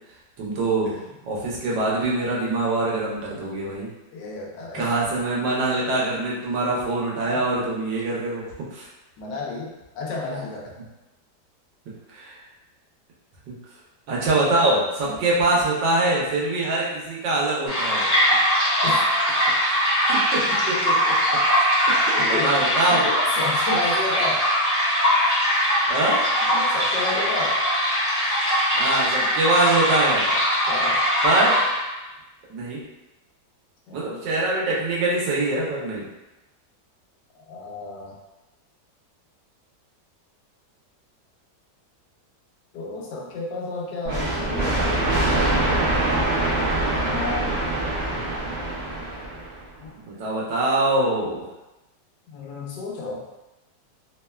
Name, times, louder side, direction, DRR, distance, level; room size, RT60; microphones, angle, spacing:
voice 1, 0.4-1.0 1.3-3.9 4.7-8.4 8.7-8.9 12.1-12.4 13.5-13.6 14.1-18.1 20.1-21.1 21.9-23.1 25.9-26.2 28.7-30.3 31.2-31.6 32.5-32.8 33.9-36.1 50.0-51.4, right 2 dB, 85° right, -4 dB, 1.4 m, -24 dB
voice 2, 4.1-5.0 7.3-7.4 9.2-9.7 9.9-10.8 15.1-15.2 18.8-19.0 22.2-22.6 22.9-24.4 26.5-27.6 30.6-31.0 33.9-34.3 37.5-38.1 42.7-45.0 47.0-47.5 49.8-49.9 52.3-53.2, left 3 dB, 80° left, -2 dB, 1.2 m, -32 dB
sound 1, 17.7-32.0, equal, 15° left, 0.9 m, -21 dB
sound 2, 44.0-49.6, right 1 dB, 55° right, 0.7 m, -24 dB
3.4 x 2.1 x 2.2 m, 1.0 s
omnidirectional pair, 1.9 m